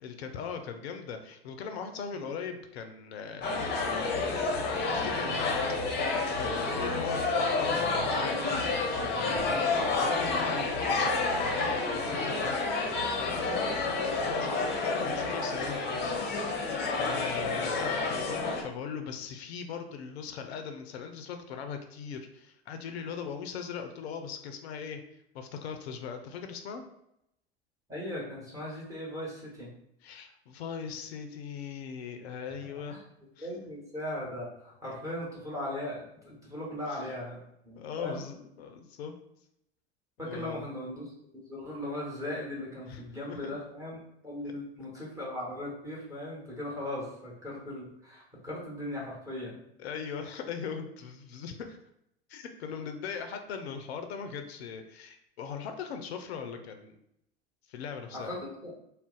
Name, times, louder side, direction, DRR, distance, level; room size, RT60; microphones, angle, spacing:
voice 1, 0.0-3.6 3.9-8.4 8.9-9.6 10.0-12.5 13.0-16.2 17.0-25.0 25.3-26.8 30.0-33.0 33.4-33.5 36.9-37.2 37.8-39.2 40.2-40.6 42.9-43.0 43.3-43.5 49.8-51.8 52.3-57.0 57.7-58.3, left 6 dB, 75° left, 6 dB, 0.5 m, -40 dB
sound 1, 3.4-18.6, left 3 dB, 30° left, 0.7 m, -29 dB
voice 2, 27.9-29.7 32.9-33.0 33.4-38.2 40.2-44.0 44.2-49.6 58.1-58.7, left 1 dB, 10° right, -5 dB, 1.1 m, -38 dB
2.4 x 2.1 x 3.8 m, 0.78 s
hypercardioid pair, 90°, 32 cm